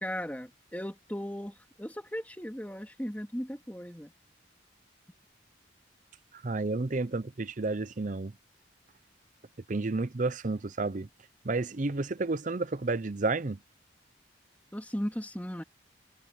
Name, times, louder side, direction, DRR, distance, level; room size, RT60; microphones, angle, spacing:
voice 1, 0.0-4.1 14.7-15.6, equal, 10° left, 2.4 m, -37 dB
voice 2, 6.3-8.3 9.7-11.1 11.4-13.6, right 3 dB, 40° right, 0.6 m, -31 dB
head